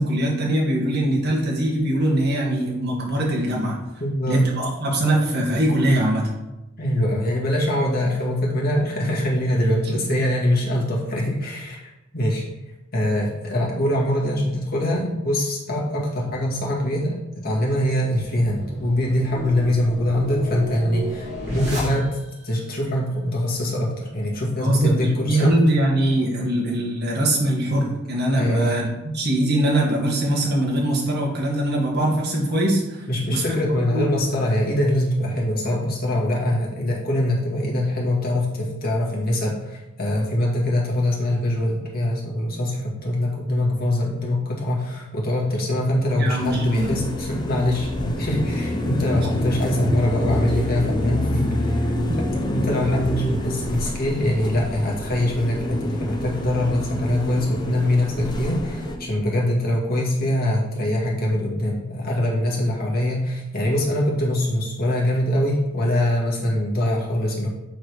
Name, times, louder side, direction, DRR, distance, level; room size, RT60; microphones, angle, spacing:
voice 1, 0.0-3.8 4.3-6.3 24.6-33.0 33.3-33.4 33.9-34.1 46.2-47.0, right 1 dB, 55° right, -2 dB, 1.6 m, -22 dB
voice 2, 4.0-4.4 6.8-11.8 12.1-12.4 12.9-22.1 22.4-25.5 28.4-28.8 33.1-51.9 52.4-67.5, left 1 dB, 50° left, -3 dB, 1.9 m, -23 dB
sound 1, 17.9-22.4, right 1 dB, 35° right, 2.4 m, -33 dB
sound 2, 46.4-59.0, left 1 dB, 20° left, 0.8 m, -27 dB
7.8 x 3.9 x 4.8 m, 0.96 s
head